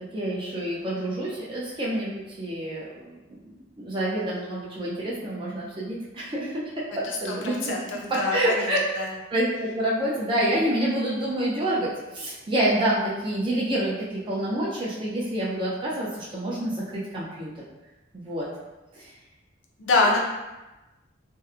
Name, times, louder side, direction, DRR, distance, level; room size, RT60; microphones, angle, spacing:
voice 1, 0.1-3.4 3.8-6.6 7.0-7.7 8.1-8.8 9.3-17.5 18.1-18.5 18.9-19.1, right 1 dB, 25° right, -7 dB, 0.4 m, -27 dB
voice 2, 7.4-9.1 19.8-20.3, left 3 dB, 85° left, -1 dB, 0.5 m, -25 dB
2.6 x 2.0 x 2.4 m, 1.1 s
head